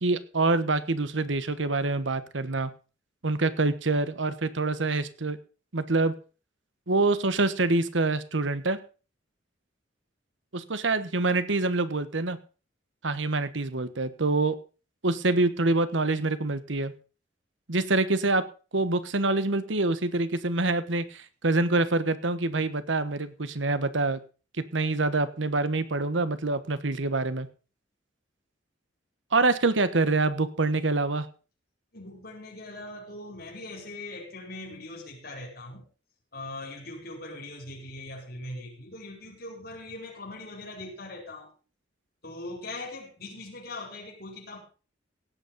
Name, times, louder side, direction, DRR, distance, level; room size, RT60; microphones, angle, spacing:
voice 1, 0.0-2.7 3.2-5.4 5.7-6.1 6.9-8.8 10.5-12.4 13.0-14.5 15.0-16.9 17.7-18.4 18.7-24.2 24.7-27.5 29.3-31.3, right 3 dB, 85° right, 13 dB, 1.2 m, -26 dB
voice 2, 31.9-35.8 36.3-41.5 42.2-44.6, left 2 dB, 55° left, 0 dB, 5.0 m, -41 dB
17.5 x 8.4 x 5.3 m, 0.36 s
head